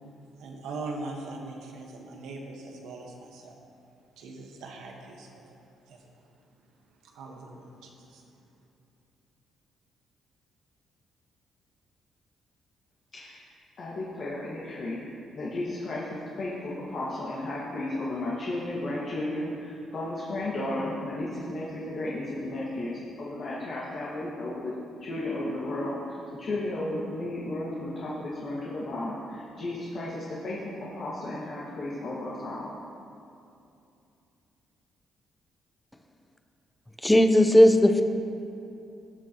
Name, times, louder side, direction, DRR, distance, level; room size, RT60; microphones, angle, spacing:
voice 1, 0.4-3.6 4.2-6.3 7.0-8.4, right 3 dB, 85° right, 0 dB, 1.5 m, -41 dB
voice 2, 13.8-15.0 15.3-22.9 23.2-24.7 25.0-32.7, left 1 dB, 55° left, -6 dB, 1.9 m, -34 dB
voice 3, 37.0-38.0, equal, 10° left, 6 dB, 0.7 m, -17 dB
18.5 x 6.7 x 3.1 m, 2.6 s
cardioid pair, 90°, 0 cm